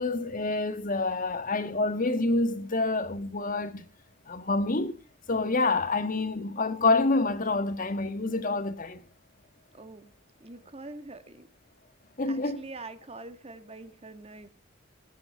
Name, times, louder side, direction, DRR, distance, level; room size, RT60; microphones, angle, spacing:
voice 1, 0.0-3.8 4.3-5.0 5.3-9.0 12.2-12.6, left 3 dB, 40° left, 1.6 m, -27 dB
voice 2, 9.7-10.1 10.4-11.5 12.3-14.5, right 2 dB, 30° right, 1.7 m, -44 dB
20.0 x 9.4 x 4.5 m
head